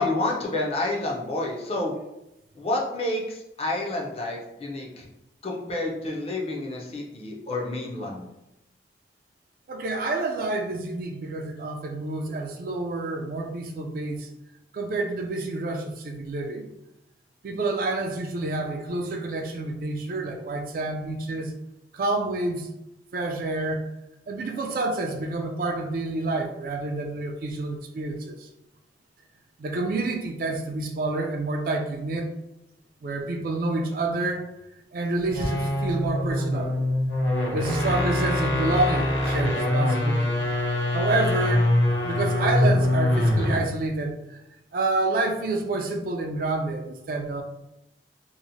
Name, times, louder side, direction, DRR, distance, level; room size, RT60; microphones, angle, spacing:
voice 1, 0.0-1.9 2.6-5.1 5.4-8.3 37.6-37.7, left 2 dB, 35° left, 0.4 m, -29 dB
voice 2, 9.7-14.3 14.7-16.7 17.4-21.5 21.9-22.7 23.1-23.8 24.3-28.3 29.6-32.3 33.0-34.4 34.9-36.7 37.5-40.4 40.9-41.6 42.0-44.2 44.7-47.4, right 2 dB, 50° right, 0.3 m, -28 dB
sound 1, 35.2-43.7, left 1 dB, 85° left, 0.5 m, -24 dB
2.7 x 2.0 x 2.6 m
head